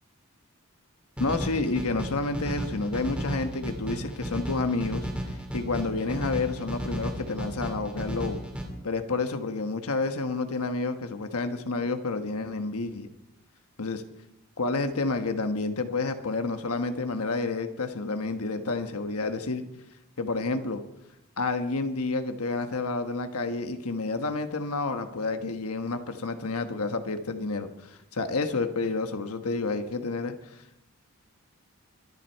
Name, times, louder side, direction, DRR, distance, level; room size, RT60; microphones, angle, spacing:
voice 1, 1.2-8.4 8.8-13.1 13.8-14.0 14.6-19.6 20.2-20.8 21.4-30.6, left 3 dB, 90° left, 7 dB, 1.2 m, -30 dB
sound 1, 1.2-8.6, equal, 5° right, 2.7 m, -34 dB
23.5 x 11.0 x 4.6 m, 0.87 s
head